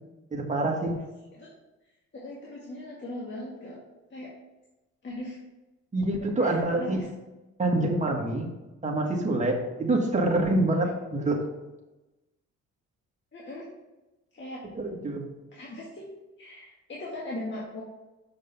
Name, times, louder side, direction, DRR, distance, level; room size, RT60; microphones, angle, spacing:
voice 1, 0.3-1.0 5.9-7.1 7.6-8.5 8.8-11.4 14.8-15.3, right 2 dB, 25° right, 0 dB, 1.8 m, -26 dB
voice 2, 2.1-3.8 4.1-4.3 5.0-5.4 6.2-7.1 13.3-13.7 14.3-14.6 15.5-16.1 16.4-17.8, left 1 dB, 40° left, -5 dB, 1.9 m, -39 dB
6.6 x 5.2 x 5.7 m, 1.1 s
cardioid pair, 90°, 30 cm